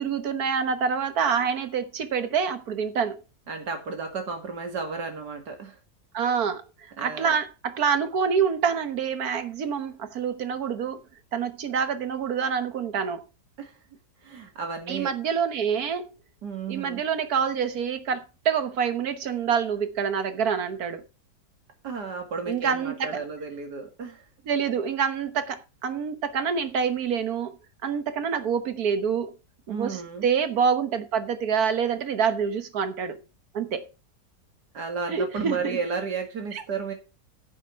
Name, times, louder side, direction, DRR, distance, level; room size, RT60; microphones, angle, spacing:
voice 1, 0.0-3.2 6.1-11.0 11.3-13.2 14.9-16.1 16.7-21.0 22.5-23.2 24.5-27.5 27.8-29.3 29.7-33.2 33.5-33.9 35.1-35.8 36.5-36.6, right 6 dB, 65° right, 1.6 m, -26 dB
voice 2, 3.5-5.8 7.0-7.4 13.6-13.7 14.2-15.1 16.4-17.0 21.8-24.2 29.7-30.3 34.7-36.9, right 5 dB, 90° right, 2.7 m, -33 dB
10.5 x 7.5 x 4.6 m
omnidirectional pair, 1.7 m